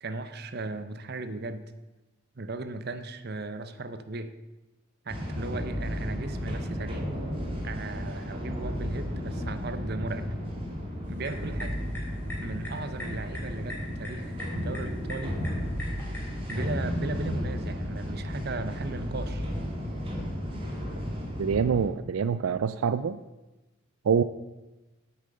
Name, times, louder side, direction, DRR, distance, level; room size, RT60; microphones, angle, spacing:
voice 1, 0.0-1.6 2.4-4.3 5.0-7.1 7.6-10.3 11.1-11.8 12.4-15.4 16.5-19.4, right 3 dB, 50° right, 11 dB, 0.8 m, -36 dB
sound 1, 5.1-21.9, equal, 25° right, 2.0 m, -33 dB
sound 2, 11.0-16.7, left 1 dB, 10° left, 3.7 m, -43 dB
voice 2, 21.4-23.2 24.0-24.2, right 6 dB, 85° right, 13 dB, 0.4 m, -25 dB
8.8 x 8.5 x 6.7 m, 1.1 s
head